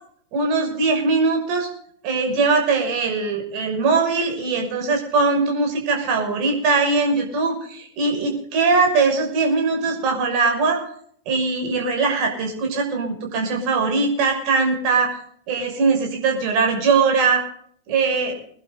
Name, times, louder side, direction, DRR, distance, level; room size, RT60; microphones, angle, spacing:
voice 1, 0.3-1.7 2.0-10.8 11.3-15.2 15.5-17.4 17.9-18.4, right 4 dB, 45° right, 2 dB, 6.2 m, -21 dB
22.5 x 11.5 x 4.0 m, 0.62 s
figure-of-eight pair, 90°, 0 cm